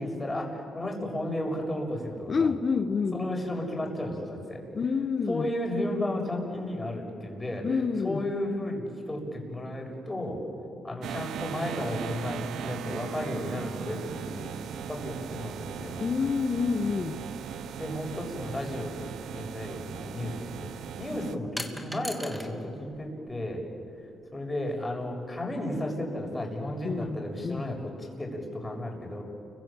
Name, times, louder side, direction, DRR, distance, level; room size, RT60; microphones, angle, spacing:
voice 1, 0.0-2.5 3.1-4.6 5.3-7.8 8.0-10.4 10.8-14.5 14.9-16.0 17.7-18.9 19.3-20.7 21.0-23.6 24.3-29.2, left 1 dB, 20° left, 1 dB, 7.2 m, -33 dB
voice 2, 2.3-3.2 4.7-5.5 7.6-8.3 16.0-17.2 26.8-27.6, left 5 dB, 45° left, 9 dB, 1.4 m, -28 dB
sound 1, 11.0-21.4, right 8 dB, 75° right, 0.9 m, -38 dB
sound 2, 21.6-22.5 22.9-23.7, equal, 5° right, 3.0 m, -39 dB
30.0 x 24.5 x 7.6 m, 2.6 s
supercardioid pair, 70°, 0 cm